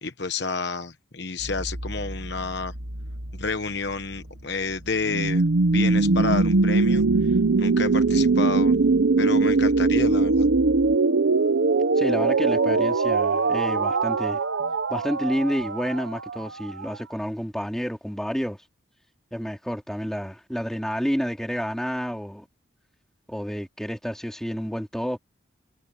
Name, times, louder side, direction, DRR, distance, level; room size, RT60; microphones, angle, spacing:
voice 1, 0.0-2.7 3.3-5.4 5.7-8.8 9.2-10.5, left 4 dB, 55° left, 1.1 m, -30 dB
sound 1, 1.4-11.0, equal, 90° right, 7.9 m, -39 dB
sound 2, 5.1-16.9, right 3 dB, 70° right, 0.7 m, -21 dB
voice 2, 12.0-14.4 14.9-18.6 19.3-22.4 23.3-25.2, equal, ahead, 3.4 m, -29 dB
head